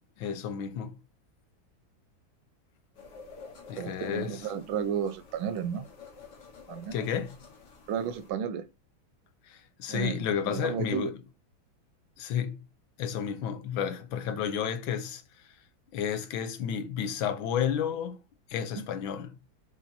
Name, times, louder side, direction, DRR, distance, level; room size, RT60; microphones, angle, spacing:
voice 1, 0.2-1.0 3.7-4.5 6.9-7.4 9.5-11.2 12.2-12.6 13.0-15.6 15.9-18.2 18.5-19.3, left 8 dB, 85° left, 1.7 m, -32 dB
sound 1, 3.0-8.3, left 4 dB, 60° left, 2.1 m, -50 dB
voice 2, 3.8-5.9 6.7-7.0 7.9-8.7 9.9-11.1, right 8 dB, 85° right, 1.7 m, -33 dB
7.4 x 5.5 x 2.8 m
omnidirectional pair, 2.1 m